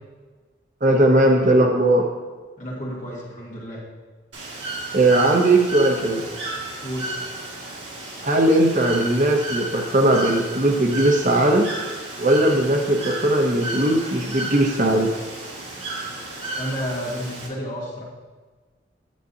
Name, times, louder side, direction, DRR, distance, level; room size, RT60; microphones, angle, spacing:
voice 1, 0.8-2.1 4.9-6.2 8.2-11.7 12.2-15.1, right 1 dB, 40° right, 1 dB, 0.8 m, -18 dB
voice 2, 2.6-3.8 6.8-7.1 16.5-18.0, equal, 45° left, -6 dB, 2.4 m, -31 dB
Bird / Water, 4.3-17.5, right 1 dB, 80° right, 1.8 m, -33 dB
9.2 x 8.2 x 2.7 m, 1.4 s
head